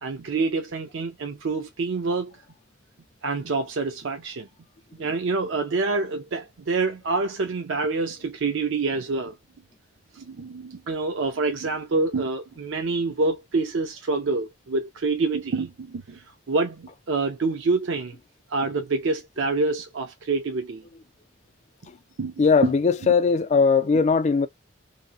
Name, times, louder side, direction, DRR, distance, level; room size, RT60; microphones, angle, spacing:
voice 1, 0.0-2.3 3.2-4.5 5.0-9.3 10.1-18.2 18.5-20.8 22.2-22.3 22.6-22.7, right 3 dB, 75° right, 0.5 m, -27 dB
voice 2, 22.4-24.5, left 5 dB, 35° left, 0.3 m, -19 dB
2.7 x 2.6 x 2.3 m
head